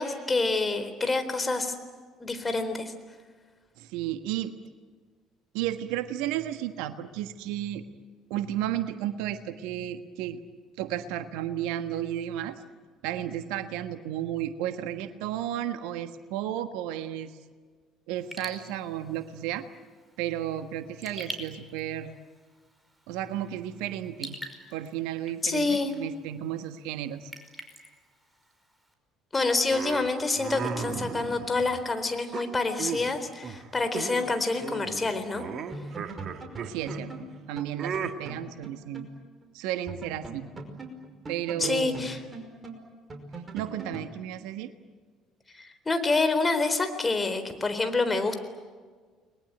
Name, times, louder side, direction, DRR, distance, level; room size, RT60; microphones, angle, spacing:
voice 1, 0.0-1.7 2.2-2.9 25.4-25.9 29.3-35.4 41.6-42.2 45.5-48.4, left 3 dB, 20° left, 9 dB, 3.9 m, -27 dB
voice 2, 3.8-4.5 5.5-7.8 8.3-10.4 10.8-12.6 13.0-17.3 18.1-19.7 20.2-22.2 23.1-24.4 24.7-27.3 36.6-39.1 39.5-40.5 41.3-42.1 43.5-44.7, right 11 dB, 70° right, 10 dB, 1.4 m, -33 dB
Raindrop / Drip, 18.2-28.9, right 1 dB, 5° right, 5.3 m, -47 dB
sound 1, 29.7-31.9 32.3-33.1 33.4-33.7 33.9-34.3 34.6-37.0 37.8-38.1, right 6 dB, 50° right, 2.0 m, -36 dB
sound 2, 35.3-35.4 35.7-39.2 39.4-39.5 39.9-44.1, right 2 dB, 25° right, 5.4 m, -41 dB
30.0 x 21.5 x 9.2 m, 1.5 s
figure-of-eight pair, 55°, 0 cm